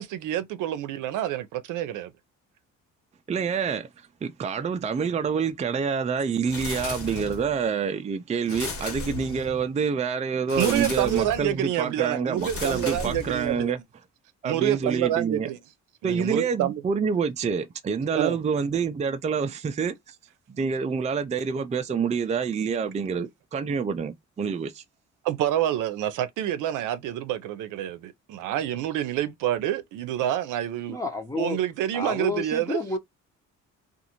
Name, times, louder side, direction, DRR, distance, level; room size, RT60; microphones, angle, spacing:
voice 1, 0.0-2.1 10.6-13.7 14.4-15.6 16.0-16.8 18.1-18.4 25.2-31.0 31.4-32.8, right 12 dB, 90° right, 0.6 m, -27 dB
voice 2, 3.3-3.9 4.2-13.8 14.4-15.5 16.0-20.1 20.5-24.8, right 6 dB, 25° right, 0.4 m, -27 dB
sound 1, 6.5-7.6 8.5-9.7 10.5-11.5 12.4-13.7, left 3 dB, 50° left, 1.4 m, -35 dB
voice 3, 30.9-31.6 31.9-33.0, left 2 dB, 10° left, 0.8 m, -30 dB
2.5 x 2.5 x 2.8 m
cardioid pair, 90°, 30 cm